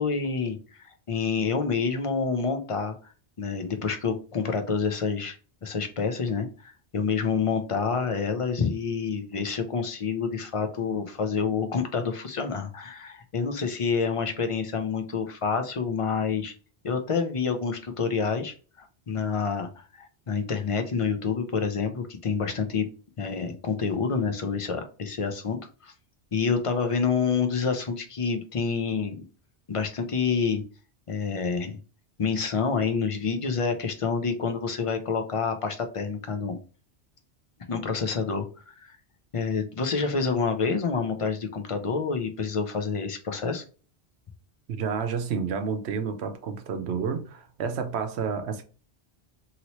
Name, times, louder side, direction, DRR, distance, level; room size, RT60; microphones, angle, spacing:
voice 1, 0.0-3.0 3.4-5.4 5.6-16.5 16.8-22.9 23.2-25.9 26.3-29.2 29.7-30.6 31.1-31.7 32.2-36.6 37.7-39.0 39.3-43.6, left 5 dB, 45° left, 0.5 m, -28 dB
voice 2, 44.7-48.6, right 6 dB, 80° right, 0.9 m, -30 dB
2.9 x 2.8 x 3.0 m
omnidirectional pair, 1.1 m